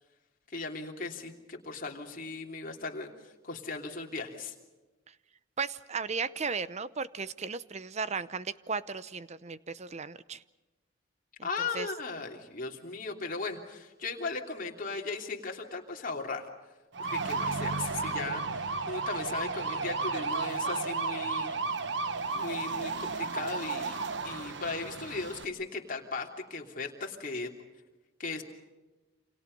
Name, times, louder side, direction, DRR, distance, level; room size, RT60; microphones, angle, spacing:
voice 1, 0.5-4.5 11.4-16.5 17.0-21.6 22.3-24.0 24.2-27.5 28.2-28.4, left 3 dB, 45° left, 1 dB, 3.2 m, -37 dB
voice 2, 5.6-10.4 11.4-11.5 11.7-11.9, right 5 dB, 35° right, 15 dB, 0.7 m, -35 dB
sound 1, 16.9-25.4, right 4 dB, 60° right, 1.3 m, -33 dB
29.0 x 27.0 x 5.4 m, 1.2 s
head